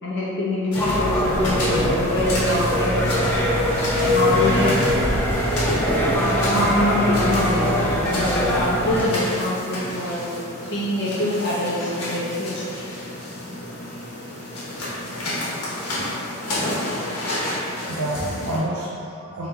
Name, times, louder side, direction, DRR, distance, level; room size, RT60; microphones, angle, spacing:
voice 1, 0.0-3.0 4.0-4.8 6.5-10.3 10.6-12.7, left 1 dB, 55° left, -6 dB, 0.7 m, -24 dB
sound 1, 0.7-18.6, left 1 dB, 80° left, 1.1 m, -31 dB
sound 2, 0.7-9.1, equal, 10° left, 0.4 m, -22 dB
voice 2, 17.3-19.5, right 1 dB, 75° right, -6 dB, 0.5 m, -30 dB
3.3 x 2.9 x 3.6 m, 2.7 s
head